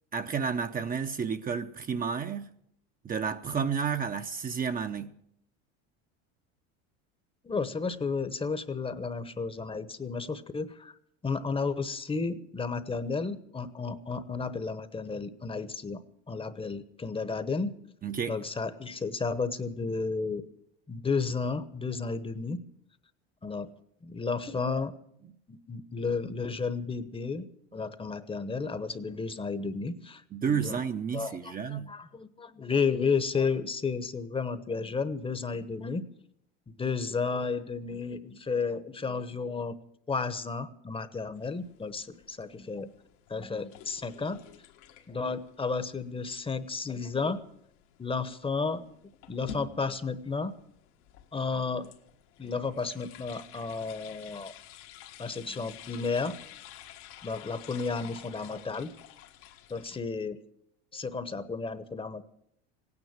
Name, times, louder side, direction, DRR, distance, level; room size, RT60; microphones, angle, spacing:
voice 1, 0.1-2.5 3.0-5.1 18.0-18.4 30.3-31.9, right 6 dB, 25° right, 0.8 m, -31 dB
voice 2, 7.4-10.9 11.2-16.0 16.3-17.7 18.3-20.4 20.9-22.6 23.4-23.7 24.0-24.9 25.5-27.5 27.7-30.2 30.5-30.8 31.1-36.0 36.7-39.8 40.1-42.9 43.3-44.4 45.1-47.4 48.0-48.8 49.3-50.5 51.3-51.9 52.4-54.5 55.2-56.4 57.2-58.9 59.7-60.4 60.9-62.2, left 4 dB, 15° left, 1.0 m, -32 dB
sound 1, 41.3-60.0, left 9 dB, 80° left, 1.8 m, -51 dB
17.0 x 9.6 x 9.0 m
supercardioid pair, 105°, 33 cm